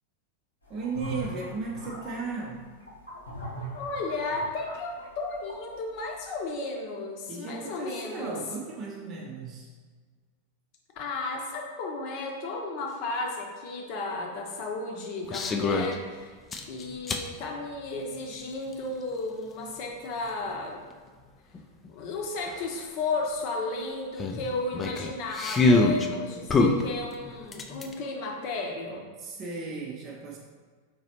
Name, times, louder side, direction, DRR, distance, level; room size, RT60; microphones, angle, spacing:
sound 1, 0.7-6.0, right 2 dB, 80° left, 1.1 m, -40 dB
voice 1, 0.7-2.7 7.3-9.7 25.7-26.4 29.2-30.4, right 3 dB, 30° right, -2 dB, 0.6 m, -36 dB
voice 2, 3.7-8.4 11.0-16.4 16.7-20.8 21.9-29.0, left 3 dB, 45° left, 1 dB, 0.8 m, -34 dB
sound 2, 15.3-16.0 16.5-17.3 18.7-18.8 21.5-21.6 21.9-22.0 22.4-22.6 24.2-26.1 26.5-27.9, left 3 dB, 20° left, 0.4 m, -24 dB
4.7 x 3.9 x 2.8 m, 1.5 s
figure-of-eight pair, 90°, 0 cm